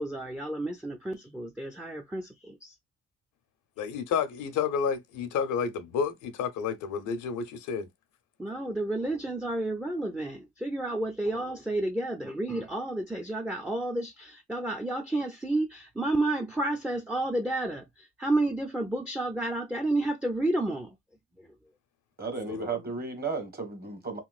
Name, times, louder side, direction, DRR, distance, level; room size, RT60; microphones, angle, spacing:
voice 1, 0.0-2.7 8.4-20.9, right 2 dB, 5° right, 0.5 m, -31 dB
voice 2, 3.8-7.9 22.5-22.7, left 6 dB, 80° left, 0.7 m, -30 dB
voice 3, 22.2-24.2, right 4 dB, 30° right, 1.2 m, -34 dB
3.0 x 2.9 x 2.3 m
cardioid pair, 90°, 30 cm